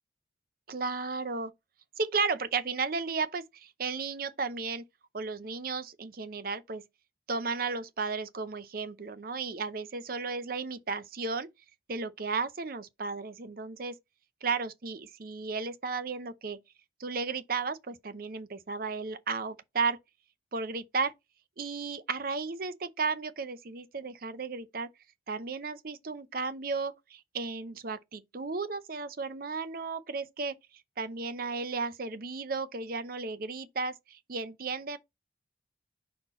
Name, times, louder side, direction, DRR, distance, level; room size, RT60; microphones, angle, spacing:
voice 1, 0.7-1.5 2.0-4.8 5.1-6.8 7.3-11.5 11.9-13.9 14.4-16.6 17.0-20.0 20.5-21.1 21.6-24.9 25.3-30.5 31.0-35.0, right 4 dB, 50° right, 0.6 m, -34 dB
5.6 x 4.3 x 3.8 m
head